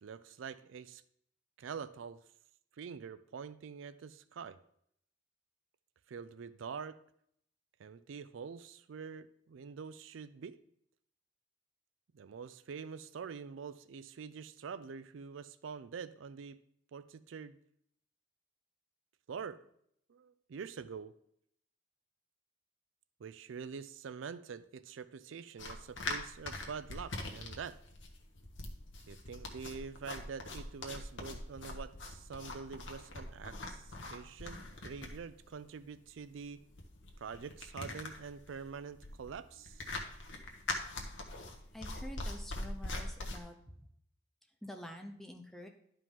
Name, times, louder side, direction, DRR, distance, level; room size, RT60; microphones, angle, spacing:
voice 1, 0.0-1.0 1.6-2.2 2.8-4.6 6.1-7.0 7.8-10.6 12.1-16.6 16.9-17.6 19.3-19.7 20.1-21.1 23.2-27.8 29.1-36.6 37.2-39.9, right 6 dB, 80° right, 15 dB, 0.4 m, -45 dB
sound 1, 25.6-43.4, left 2 dB, 75° left, 1.3 m, -43 dB
voice 2, 41.7-43.6 44.6-45.7, equal, ahead, 3 dB, 0.7 m, -47 dB
11.0 x 5.0 x 3.7 m, 0.69 s
head